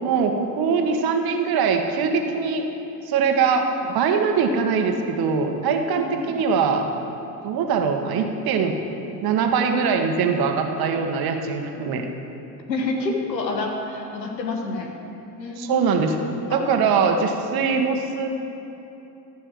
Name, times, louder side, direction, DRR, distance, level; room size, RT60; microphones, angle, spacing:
voice 1, 0.0-2.6 3.0-3.7 3.9-6.8 7.4-8.8 9.2-12.1 15.6-16.2 16.5-18.3, right 5 dB, 45° right, 4 dB, 1.4 m, -22 dB
voice 2, 12.7-14.9 15.4-15.8 16.5-16.7, left 3 dB, 90° left, 2 dB, 1.5 m, -28 dB
13.5 x 6.4 x 7.4 m, 3.0 s
hypercardioid pair, 75°, 49 cm